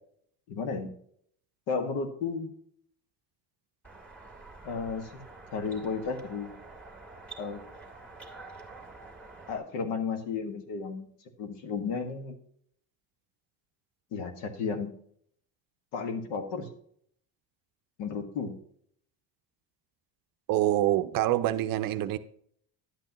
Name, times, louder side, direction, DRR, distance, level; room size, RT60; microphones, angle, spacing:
voice 1, 0.5-0.9 1.7-2.5 4.6-5.2 5.5-6.5 7.4-7.6 9.5-11.1 11.4-12.4 14.1-14.9 15.9-16.7 18.0-18.6, left 5 dB, 70° left, 6 dB, 1.7 m, -33 dB
sound 1, 3.8-9.6, right 3 dB, 5° left, 2.1 m, -48 dB
voice 2, 20.5-22.2, right 14 dB, 50° right, 11 dB, 0.6 m, -26 dB
11.5 x 8.2 x 3.0 m, 0.64 s
cardioid pair, 130°, 45 cm